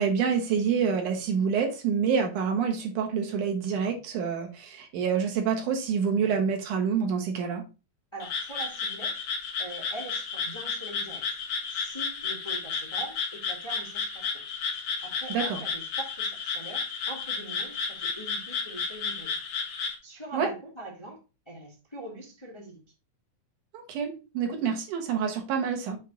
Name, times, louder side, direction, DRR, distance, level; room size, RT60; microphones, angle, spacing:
voice 1, 0.0-7.6 15.3-15.6 20.3-20.5 23.7-26.0, right 6 dB, 80° right, 3 dB, 2.9 m, -27 dB
voice 2, 8.1-9.1 9.6-11.4 11.7-14.4 15.0-19.3 20.0-21.2 21.5-22.8, right 2 dB, 15° left, -2 dB, 1.2 m, -42 dB
Frog, 8.2-20.0, left 5 dB, 65° left, 2.7 m, -32 dB
7.4 x 3.4 x 5.1 m, 0.30 s
omnidirectional pair, 3.5 m